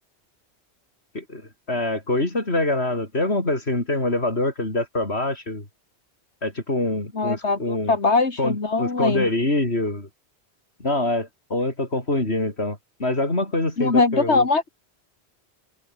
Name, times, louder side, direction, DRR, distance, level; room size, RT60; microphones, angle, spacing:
voice 1, 1.1-5.6 6.4-8.0 8.4-10.1 10.8-14.5, left 2 dB, 70° left, 5.9 m, -25 dB
voice 2, 7.1-9.3 13.8-14.7, left 3 dB, 85° left, 3.0 m, -21 dB
omnidirectional pair, 1.1 m